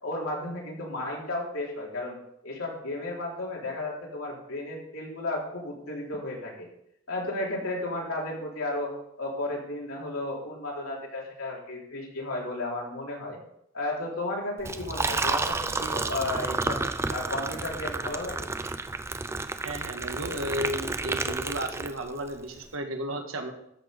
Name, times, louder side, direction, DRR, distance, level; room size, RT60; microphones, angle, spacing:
voice 1, 0.0-2.2 2.4-6.7 7.1-8.9 9.2-13.4 13.7-16.8 17.1-18.5, left 2 dB, 90° left, -2 dB, 3.6 m, -33 dB
Liquid, 14.6-22.3, right 3 dB, 10° right, 0.3 m, -31 dB
voice 2, 19.6-23.5, equal, 80° right, 4 dB, 1.7 m, -33 dB
13.0 x 6.3 x 5.2 m, 0.76 s
head